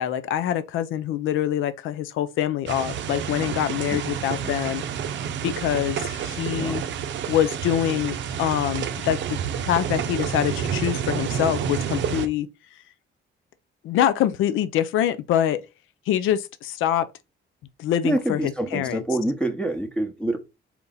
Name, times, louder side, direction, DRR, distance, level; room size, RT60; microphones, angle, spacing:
voice 1, 0.0-4.8 5.4-6.8 7.3-12.5 13.8-15.6 16.1-17.1 17.8-19.0, left 11 dB, 85° left, 0.5 m, -25 dB
sound 1, 2.7-12.3, right 8 dB, 70° right, 0.6 m, -29 dB
voice 2, 18.0-20.4, right 1 dB, 5° left, 0.9 m, -26 dB
4.4 x 2.7 x 3.7 m
cardioid pair, 90°, 20 cm